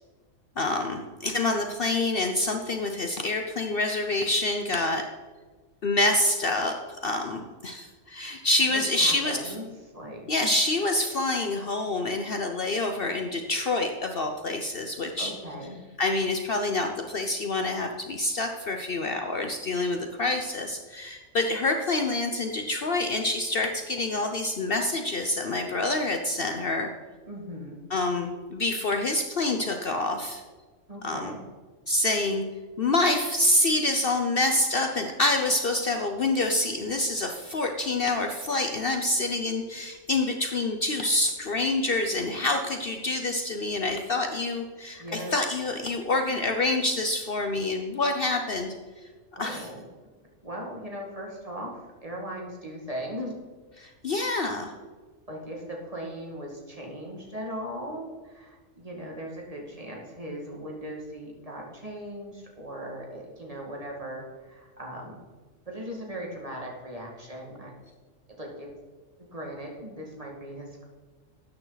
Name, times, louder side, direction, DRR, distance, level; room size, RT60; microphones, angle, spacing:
voice 1, 0.6-5.1 5.8-9.5 10.3-15.3 16.0-26.9 27.9-30.4 31.0-31.3 31.9-32.4 32.8-48.8 49.4-49.7 53.8-54.7, left 2 dB, 50° left, 5 dB, 0.9 m, -27 dB
voice 2, 8.7-9.7 9.9-10.5 15.2-15.8 27.3-27.8 30.9-31.4 45.0-45.4 49.3-49.8 50.4-53.3 55.3-65.2 65.7-67.7 68.4-68.7 69.3-70.8, equal, 30° right, -1 dB, 2.2 m, -38 dB
13.0 x 9.3 x 4.0 m, 1.4 s
omnidirectional pair, 1.3 m